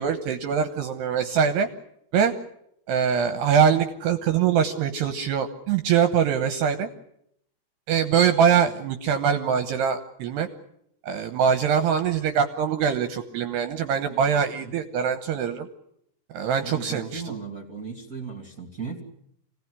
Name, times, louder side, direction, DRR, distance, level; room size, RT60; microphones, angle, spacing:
voice 1, 0.0-1.7 2.1-2.3 2.9-6.9 7.9-10.5 11.0-15.7 16.3-17.3, right 7 dB, 70° right, 8 dB, 2.7 m, -23 dB
voice 2, 16.6-19.0, right 5 dB, 30° right, 3 dB, 1.8 m, -36 dB
26.5 x 18.0 x 9.7 m, 0.75 s
omnidirectional pair, 5.8 m